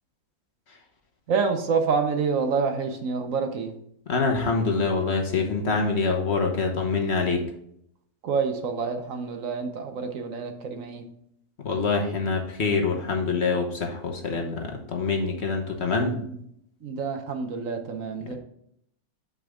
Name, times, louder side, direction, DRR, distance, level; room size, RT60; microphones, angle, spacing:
voice 1, 1.3-3.7 8.2-11.1 16.1-16.4 16.8-18.4, right 5 dB, 65° right, 6 dB, 1.1 m, -27 dB
voice 2, 4.1-7.4 11.6-14.6 14.9-16.2, left 4 dB, 50° left, 2 dB, 1.2 m, -25 dB
6.2 x 5.9 x 3.6 m, 0.71 s
omnidirectional pair, 1.6 m